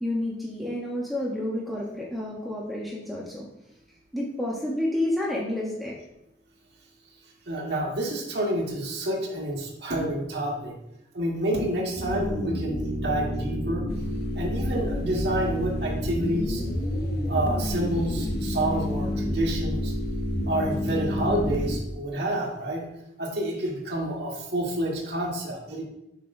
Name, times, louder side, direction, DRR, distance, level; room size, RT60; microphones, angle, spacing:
voice 1, 0.0-3.5 4.1-6.0, left 1 dB, ahead, -5 dB, 0.8 m, -30 dB
voice 2, 7.5-10.7 11.1-13.9 14.3-16.6 17.3-19.9 20.5-22.9 23.2-25.8, right 1 dB, 60° right, -2 dB, 1.5 m, -28 dB
sound 1, 12.0-21.8, equal, 70° left, 1.6 m, -29 dB
sound 2, 13.9-21.7, left 2 dB, 55° left, 0.4 m, -37 dB
7.4 x 5.5 x 2.6 m, 0.85 s
head